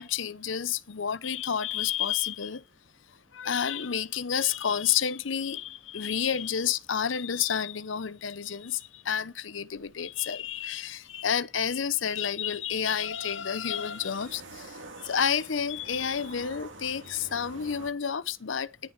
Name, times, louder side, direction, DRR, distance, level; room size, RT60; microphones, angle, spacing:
voice 1, 0.0-2.6 3.3-18.7, left 8 dB, 85° left, 0.7 m, -30 dB
sound 1, 12.5-17.9, right 2 dB, 90° right, 3.3 m, -48 dB
11.0 x 10.5 x 8.0 m
head